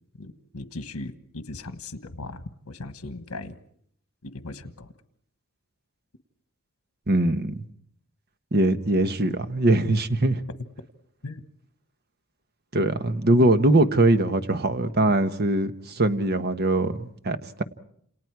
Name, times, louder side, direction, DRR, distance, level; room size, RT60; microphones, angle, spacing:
voice 1, 0.2-3.5 4.2-4.9 11.2-11.4, left 2 dB, 80° left, 1.4 m, -38 dB
voice 2, 7.1-7.6 8.5-10.4 12.7-17.6, right 2 dB, 45° right, 1.2 m, -22 dB
30.0 x 28.0 x 4.7 m
head